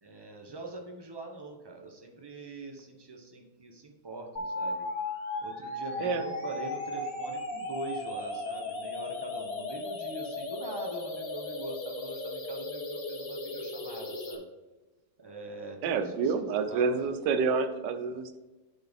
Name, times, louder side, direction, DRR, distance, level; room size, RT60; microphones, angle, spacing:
voice 1, 0.0-4.9 5.4-14.5 15.2-17.0, right 3 dB, 20° right, 2 dB, 0.6 m, -43 dB
sound 1, 4.4-14.4, left 2 dB, 45° left, 1.1 m, -36 dB
voice 2, 15.8-18.4, right 5 dB, 85° right, 9 dB, 1.3 m, -28 dB
11.5 x 3.9 x 3.5 m, 1.2 s
omnidirectional pair, 1.8 m